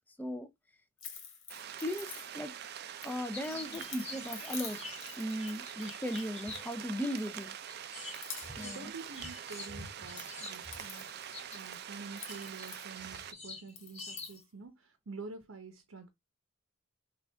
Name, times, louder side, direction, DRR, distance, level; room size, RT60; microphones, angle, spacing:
sound 1, 1.0-2.6 3.0-6.8 7.2-7.8 8.1-9.6 9.9-13.3 13.7-14.4, left 6 dB, 60° left, 1.7 m, -48 dB
sound 2, 1.5-13.3, right 9 dB, 50° right, 0.4 m, -45 dB
voice 1, 1.8-2.5 3.0-4.8 5.2-7.5 8.6-8.9, equal, 10° left, 0.4 m, -37 dB
sound 3, 3.3-7.3 7.7-11.7 12.2-14.4, left 3 dB, 30° left, 1.9 m, -47 dB
voice 2, 3.5-3.9 8.6-16.1, right 4 dB, 80° right, 0.8 m, -48 dB
6.0 x 2.4 x 3.3 m
head